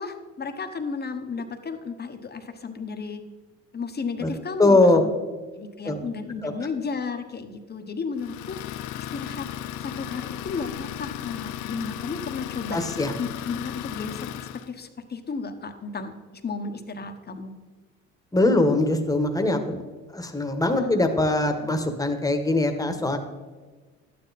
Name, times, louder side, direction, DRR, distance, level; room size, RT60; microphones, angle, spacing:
voice 1, 0.0-3.2 3.7-5.1 5.6-8.6 9.0-9.5 9.8-12.8 13.2-16.1 16.4-17.5 20.8-21.0 21.6-21.7, left 5 dB, 30° left, 7 dB, 1.3 m, -33 dB
voice 2, 4.6-5.0 5.8-6.0 6.4-6.5 12.7-13.1 18.3-19.8 20.1-23.2, left 2 dB, 10° left, 6 dB, 1.5 m, -21 dB
Idling, 8.2-14.7, left 11 dB, 70° left, 0.6 m, -35 dB
12.0 x 9.5 x 4.2 m, 1.4 s
supercardioid pair, 80°, 31 cm